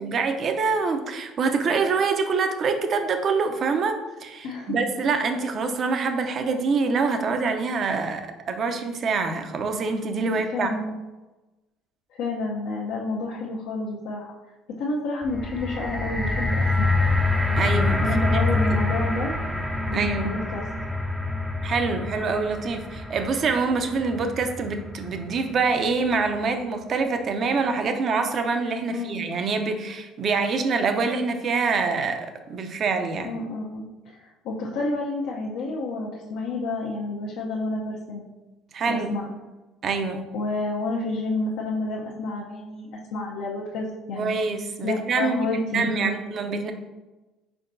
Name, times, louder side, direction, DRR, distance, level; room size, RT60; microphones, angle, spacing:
voice 1, 0.0-10.7 17.5-18.0 18.3-18.4 19.9-20.3 21.6-33.3 38.7-39.1 39.8-40.2 44.1-45.4 45.7-46.7, right 4 dB, 50° right, 6 dB, 0.6 m, -25 dB
voice 2, 4.4-4.7 10.3-10.9 12.1-14.3 14.8-17.0 17.5-19.3 19.9-20.7 28.9-29.2 33.2-38.2 38.9-39.3 40.3-44.4 44.8-46.2, left 2 dB, 75° left, -3 dB, 0.7 m, -30 dB
sound 1, 15.2-25.5 26.2-26.3, left 2 dB, ahead, 0.5 m, -26 dB
4.6 x 4.4 x 2.6 m, 1.1 s
supercardioid pair, 80°, 0 cm